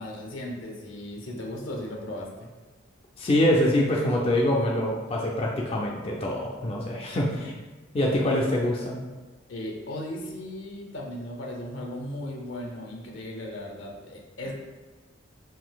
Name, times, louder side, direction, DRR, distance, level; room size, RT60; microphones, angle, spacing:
voice 1, 0.0-2.5 7.4-7.5 9.5-14.5, left 1 dB, 85° left, 0 dB, 0.6 m, -36 dB
voice 2, 3.2-7.5 7.9-9.0, left 1 dB, 30° left, -2 dB, 0.3 m, -24 dB
3.7 x 2.6 x 2.2 m, 1.3 s
head